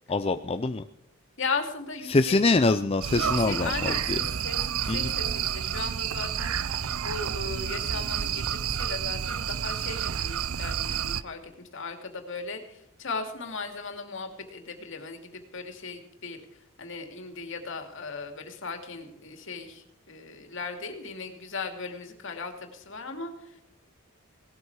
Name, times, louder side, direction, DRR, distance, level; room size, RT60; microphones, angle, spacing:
voice 1, 0.1-0.8 2.1-4.2 4.9-5.1, left 3 dB, 25° left, 9 dB, 0.5 m, -24 dB
voice 2, 1.4-2.4 3.2-16.4 16.8-23.6, left 4 dB, 60° left, 5 dB, 2.6 m, -37 dB
sound 1, 3.0-11.2, right 9 dB, 80° right, 0.6 m, -30 dB
18.0 x 13.0 x 4.8 m, 0.80 s
head